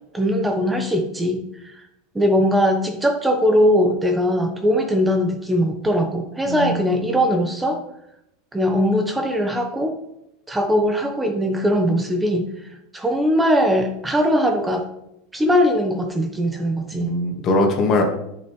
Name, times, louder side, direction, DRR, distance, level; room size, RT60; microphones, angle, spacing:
voice 1, 0.1-1.4 1.7-1.8 2.1-7.8 8.5-10.0 10.5-12.5 12.9-14.8 15.3-17.1, equal, 10° right, 4 dB, 1.1 m, -20 dB
voice 2, 6.5-7.2 17.0-18.0, left 2 dB, 40° left, 2 dB, 2.0 m, -21 dB
10.5 x 6.0 x 3.3 m, 0.81 s
hypercardioid pair, 95°, 0 cm